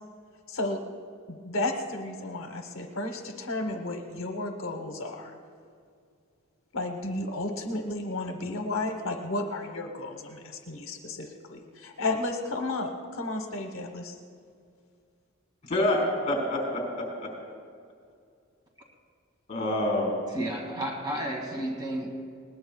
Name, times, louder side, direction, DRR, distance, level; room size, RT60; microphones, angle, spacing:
voice 1, 0.5-0.8 1.3-5.4 6.7-14.2, left 2 dB, 65° left, 4 dB, 1.0 m, -33 dB
voice 2, 15.7-17.3 19.5-20.2, left 1 dB, 35° left, -1 dB, 3.9 m, -27 dB
voice 3, 20.3-22.2, right 1 dB, 20° right, 0 dB, 2.2 m, -32 dB
21.0 x 19.0 x 2.3 m, 2.3 s
head